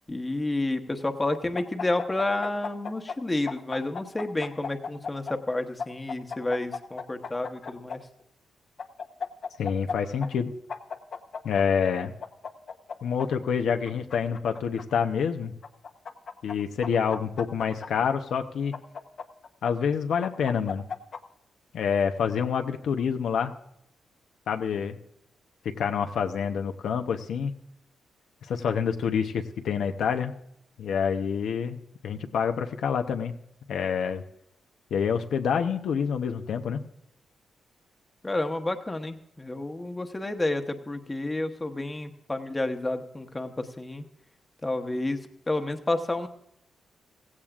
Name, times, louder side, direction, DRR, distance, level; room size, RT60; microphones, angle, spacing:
voice 1, 0.1-8.0 38.2-44.0 44.6-45.2 45.5-46.3, left 2 dB, 15° left, 6 dB, 1.0 m, -30 dB
sound 1, 1.5-3.2 3.5-5.3 5.8-8.0 8.8-9.9 10.2-10.3 10.7-11.6 12.2-13.3 13.9-14.8 15.6-16.5 16.8-18.1 18.7-19.7 20.2-21.2, left 5 dB, 55° left, 0.9 m, -35 dB
voice 2, 9.6-10.5 11.4-12.1 13.0-15.5 16.4-18.7 19.6-20.9 21.7-23.5 24.5-25.0 25.6-27.5 28.5-30.3 30.8-33.4 33.7-34.2 34.9-36.8, left 7 dB, 80° left, 6 dB, 0.8 m, -27 dB
16.0 x 16.0 x 2.5 m, 0.77 s
cardioid pair, 115°, 0 cm